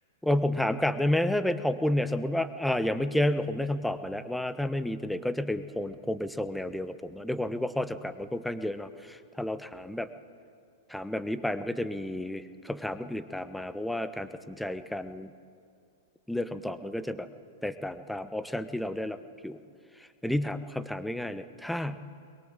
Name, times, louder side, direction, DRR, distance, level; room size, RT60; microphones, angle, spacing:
voice 1, 0.2-10.1 10.9-15.3 16.3-17.3 17.6-19.2 19.4-19.6 20.2-22.0, left 1 dB, 5° left, 12 dB, 1.0 m, -31 dB
22.0 x 22.0 x 7.4 m, 2.3 s
figure-of-eight pair, 100°, 0 cm